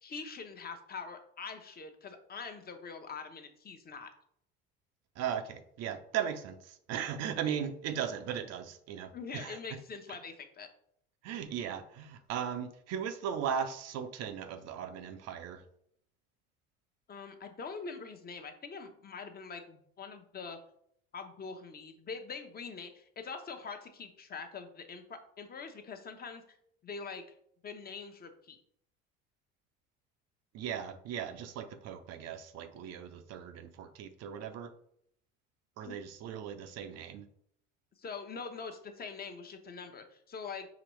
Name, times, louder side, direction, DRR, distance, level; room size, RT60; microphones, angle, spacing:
voice 1, 0.0-4.1 9.1-10.7 17.1-20.6 21.1-26.6 26.8-27.2 27.6-28.6 35.8-36.0 38.0-40.7, left 5 dB, 30° left, 6 dB, 0.8 m, -44 dB
voice 2, 5.2-9.8 10.1-10.2 11.2-15.6 30.5-34.7 35.8-37.3, right 8 dB, 55° right, 8 dB, 0.6 m, -37 dB
5.0 x 2.9 x 3.1 m, 0.68 s
hypercardioid pair, 75°, 30 cm